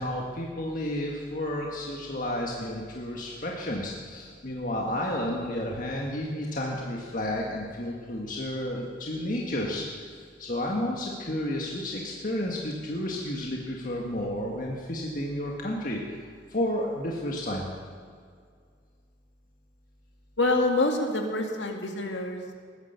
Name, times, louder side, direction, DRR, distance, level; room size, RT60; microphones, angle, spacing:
voice 1, 0.0-17.7, left 1 dB, 45° left, -1 dB, 1.7 m, -31 dB
voice 2, 20.4-22.6, left 2 dB, 70° left, 3 dB, 2.2 m, -26 dB
20.0 x 10.5 x 7.0 m, 2.1 s
head